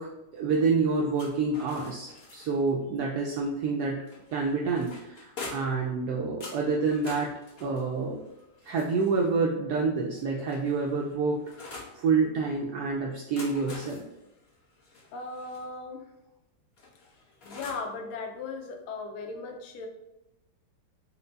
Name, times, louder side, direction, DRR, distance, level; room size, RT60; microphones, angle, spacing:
voice 1, 0.0-4.0 4.3-7.3 7.6-8.2 8.6-14.0, right 4 dB, 90° right, -1 dB, 0.8 m, -28 dB
sound 1, 1.1-2.7 4.1-5.8 6.4-9.3 10.1-12.0 13.1-15.6 16.8-17.9, left 3 dB, 50° left, 0.7 m, -46 dB
voice 2, 15.1-16.0 17.4-19.9, left 4 dB, 90° left, 3 dB, 1.5 m, -37 dB
4.5 x 2.2 x 3.9 m, 0.91 s
omnidirectional pair, 2.3 m